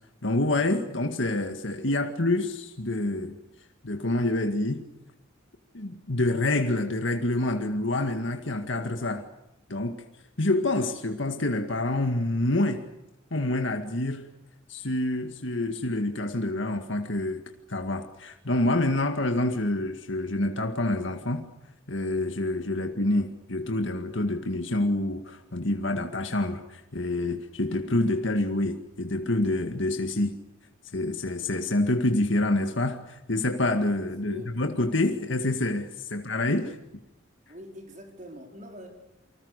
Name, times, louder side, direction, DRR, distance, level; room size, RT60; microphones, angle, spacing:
voice 1, 0.2-3.4 3.8-4.8 5.7-9.2 9.7-10.0 10.4-12.8 13.3-14.3 14.7-17.4 17.7-21.4 21.9-30.3 30.9-36.8, left 2 dB, 65° left, 2.0 m, -27 dB
voice 2, 34.2-34.6 36.6-36.7 37.5-38.9, left 1 dB, 40° right, 4.5 m, -43 dB
29.0 x 25.5 x 6.7 m
head